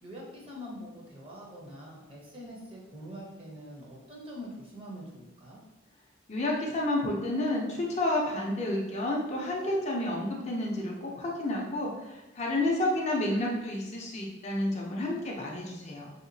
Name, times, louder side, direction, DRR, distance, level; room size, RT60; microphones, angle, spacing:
voice 1, 0.0-5.6, equal, 30° right, -3 dB, 0.7 m, -44 dB
voice 2, 6.3-16.1, left 1 dB, 35° left, -2 dB, 0.5 m, -30 dB
3.4 x 2.8 x 2.6 m, 1.0 s
head